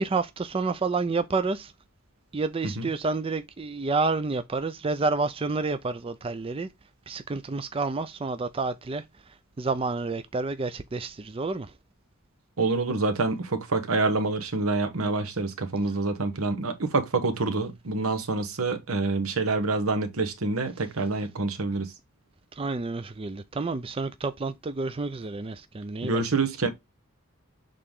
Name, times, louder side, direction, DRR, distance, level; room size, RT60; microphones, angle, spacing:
voice 1, 0.0-1.7 2.3-6.7 7.1-11.7 22.5-26.2, right 3 dB, 25° right, 0.4 m, -29 dB
voice 2, 12.6-21.9 26.0-26.7, right 3 dB, 80° right, 1.1 m, -27 dB
6.7 x 3.9 x 3.6 m
head